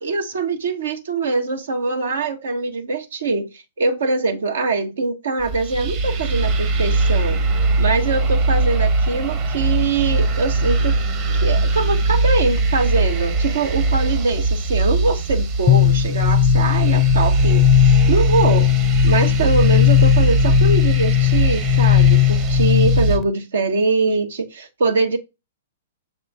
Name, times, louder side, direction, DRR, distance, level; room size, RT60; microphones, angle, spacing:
voice 1, 0.0-7.4 7.8-10.9 11.4-18.7 19.0-25.2, right 4 dB, 75° right, 1.4 m, -23 dB
sound 1, 5.4-23.2, right 3 dB, 40° right, 1.3 m, -20 dB
sound 2, 15.7-23.2, left 17 dB, 35° left, 0.6 m, -17 dB
6.9 x 4.4 x 3.5 m
hypercardioid pair, 115°, 0 cm